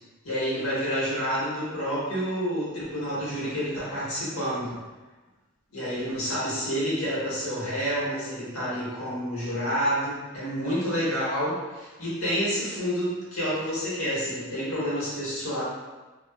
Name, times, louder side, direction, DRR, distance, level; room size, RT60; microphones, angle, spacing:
voice 1, 0.2-4.7 5.7-15.6, equal, 80° left, -9 dB, 1.2 m, -29 dB
2.5 x 2.3 x 2.3 m, 1.2 s
head